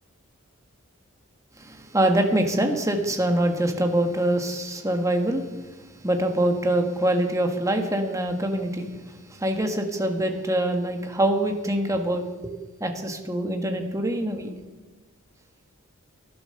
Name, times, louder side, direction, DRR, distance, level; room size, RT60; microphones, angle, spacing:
voice 1, 1.6-5.5 6.0-12.5 12.8-14.5, right 1 dB, 15° right, 4 dB, 1.5 m, -24 dB
12.5 x 11.0 x 6.7 m, 1.2 s
head